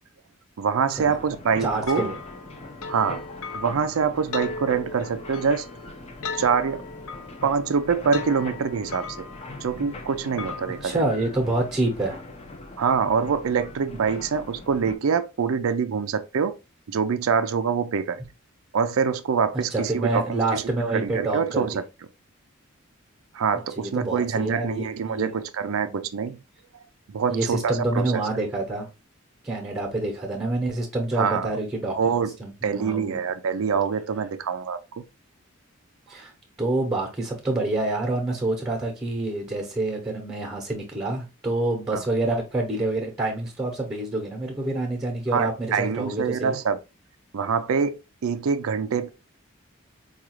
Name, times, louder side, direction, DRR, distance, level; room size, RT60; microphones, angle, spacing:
voice 1, 0.6-2.1 2.9-3.2 3.5-5.7 6.4-6.8 7.4-9.3 9.6-11.0 12.8-16.6 16.9-18.2 18.7-20.6 20.9-21.8 23.3-26.4 27.1-27.7 28.1-28.2 31.2-31.5 32.0-32.3 32.6-35.0 41.9-42.0 45.3-46.8 47.3-49.1, right 6 dB, 75° right, 0.4 m, -25 dB
sound 1, 0.9-14.9, left 2 dB, 30° left, 0.6 m, -41 dB
voice 2, 1.6-2.2 10.7-12.2 19.7-21.7 23.8-25.3 25.7-26.0 27.3-28.9 29.4-31.9 32.4-33.2 36.1-36.3 36.6-46.6, right 2 dB, 15° right, 0.9 m, -27 dB
sound 2, 1.9-10.8, left 4 dB, 80° left, 0.6 m, -38 dB
4.8 x 2.4 x 3.0 m
head